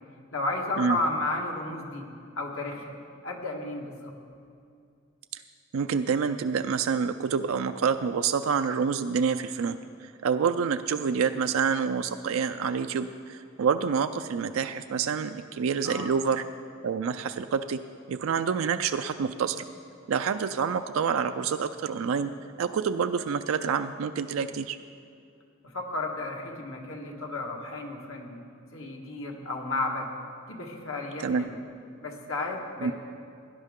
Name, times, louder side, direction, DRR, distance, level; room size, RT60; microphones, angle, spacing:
voice 1, 0.3-2.0 2.3-2.9 3.2-4.1 15.8-16.1 25.7-28.4 28.7-30.1 30.5-31.6 32.0-32.9, left 2 dB, 75° left, 1 dB, 1.6 m, -33 dB
voice 2, 5.7-16.4 16.8-17.8 18.1-19.6 20.1-22.3 22.6-24.8 31.2-31.4 32.8-32.9, right 6 dB, 75° right, 8 dB, 0.4 m, -27 dB
17.5 x 10.5 x 3.7 m, 2.4 s
head